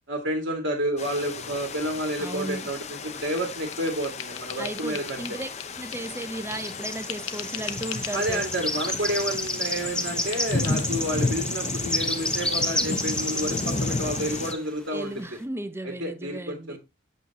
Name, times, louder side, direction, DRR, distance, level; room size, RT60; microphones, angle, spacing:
voice 1, 0.1-5.2 8.1-15.2 15.8-16.8, right 1 dB, 60° right, 2.2 m, -30 dB
sound 1, 1.0-14.5, left 3 dB, 35° left, 0.6 m, -33 dB
sound 2, 1.5-3.1 3.4-4.6 4.9-5.1 5.8-14.6, left 1 dB, 5° left, 1.0 m, -31 dB
voice 2, 2.2-2.7 4.6-5.5 5.8-8.4 14.9-16.8, right 1 dB, 10° right, 0.6 m, -35 dB
sound 3, 3.1-6.8 7.1-8.2 8.6-9.8 10.3-10.8, left 10 dB, 65° left, 0.8 m, -40 dB
8.3 x 7.9 x 2.9 m
head